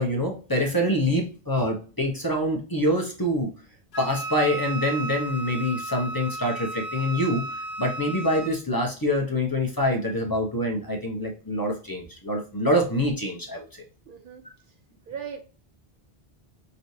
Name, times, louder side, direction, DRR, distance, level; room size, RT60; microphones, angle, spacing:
voice 1, 0.0-3.5 4.0-7.4 7.8-13.6, equal, 20° left, 0.9 m, -25 dB
Wind instrument woodwind instrument, 3.9-8.5, right 2 dB, 75° left, 1.2 m, -34 dB
voice 2, 14.1-14.4 15.1-15.4, right 7 dB, 60° right, 0.7 m, -37 dB
5.3 x 3.1 x 2.7 m
omnidirectional pair, 1.0 m